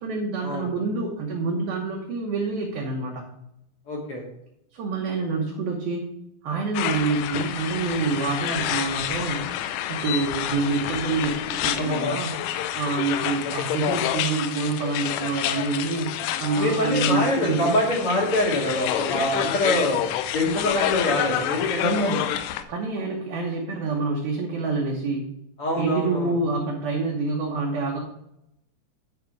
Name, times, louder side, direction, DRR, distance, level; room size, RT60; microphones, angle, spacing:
voice 1, 0.0-3.3 4.7-6.1 6.4-9.4 9.9-12.3 12.8-16.1 16.4-17.8 21.8-22.2 22.7-25.3 25.8-28.0, right 3 dB, 70° right, -1 dB, 2.3 m, -27 dB
voice 2, 3.9-4.2 16.6-20.0 20.3-22.2 25.6-26.3, left 1 dB, 55° left, -2 dB, 1.6 m, -24 dB
sound 1, 6.7-22.6, left 11 dB, 85° left, 3.1 m, -28 dB
11.0 x 5.0 x 4.6 m, 0.81 s
omnidirectional pair, 5.7 m